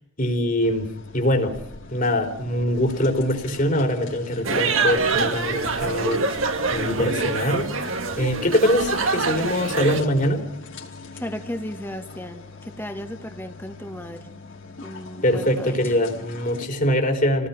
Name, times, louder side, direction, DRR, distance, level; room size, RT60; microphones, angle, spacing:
voice 1, 0.2-1.6 1.9-6.3 6.7-7.7 8.2-10.4 15.2-17.5, equal, 40° left, 4 dB, 4.2 m, -23 dB
sound 1, 0.6-16.6, left 4 dB, 65° left, 4.7 m, -42 dB
sound 2, 4.4-10.0, right 4 dB, 75° right, 2.2 m, -25 dB
voice 2, 11.1-14.2 14.8-15.9, left 1 dB, 10° left, 6 dB, 2.0 m, -35 dB
29.5 x 19.0 x 5.9 m, 0.80 s
head